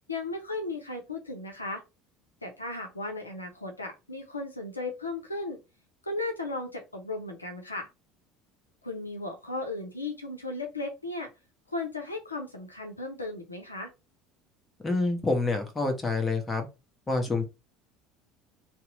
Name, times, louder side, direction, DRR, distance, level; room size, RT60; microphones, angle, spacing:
voice 1, 0.1-1.8 2.4-5.6 6.0-7.9 8.8-11.3 11.7-13.9, left 2 dB, 85° left, 3 dB, 0.5 m, -35 dB
voice 2, 14.8-16.7 17.1-17.4, left 3 dB, 20° left, 5 dB, 0.9 m, -27 dB
2.8 x 2.0 x 3.7 m, 0.26 s
figure-of-eight pair, 65°, 0 cm